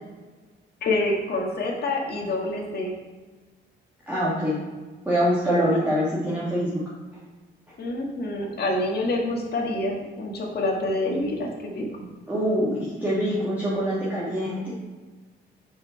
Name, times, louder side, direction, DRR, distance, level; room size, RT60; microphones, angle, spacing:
voice 1, 0.8-2.9 5.8-5.9 7.8-11.5 11.8-11.9, left 2 dB, 55° left, -1 dB, 1.8 m, -27 dB
voice 2, 4.1-4.6 5.0-6.8 8.4-8.5 12.3-14.6, equal, 10° right, -9 dB, 2.1 m, -24 dB
5.5 x 5.5 x 4.6 m, 1.3 s
cardioid pair, 90°, 20 cm